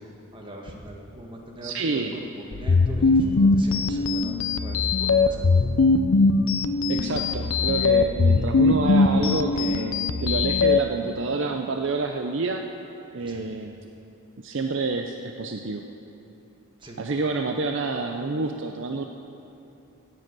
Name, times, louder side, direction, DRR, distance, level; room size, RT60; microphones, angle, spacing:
voice 1, 0.0-5.8 13.2-13.5 16.8-17.0, equal, 20° right, 0 dB, 1.5 m, -42 dB
voice 2, 1.6-2.2 6.9-12.7 13.1-13.7 14.4-15.8 17.0-19.0, right 3 dB, 55° right, 4 dB, 0.5 m, -28 dB
sound 1, 2.5-10.8, left 3 dB, 70° left, 0.6 m, -21 dB
16.5 x 7.8 x 6.1 m, 2.8 s
head